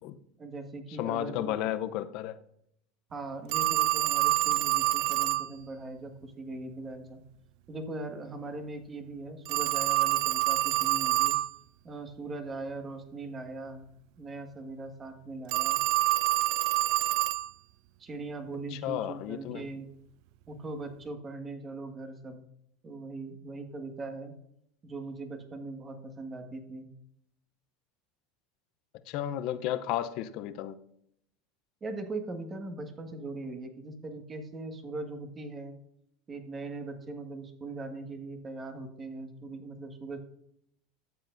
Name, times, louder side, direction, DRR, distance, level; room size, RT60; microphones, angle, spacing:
voice 1, 0.4-1.6 3.1-7.2 7.7-11.4 11.8-13.9 14.2-15.8 18.0-19.9 20.5-22.4 22.8-24.3 24.8-26.9 31.8-35.8 36.3-40.2, right 2 dB, 30° right, 5 dB, 1.7 m, -40 dB
voice 2, 1.0-2.4 18.7-19.7 29.1-30.8, left 12 dB, 60° left, 11 dB, 0.6 m, -33 dB
Telephone, 3.5-5.5 9.5-11.5 15.5-17.5, right 17 dB, 65° right, 0.4 m, -26 dB
13.0 x 7.7 x 2.6 m, 0.73 s
supercardioid pair, 105°, 0 cm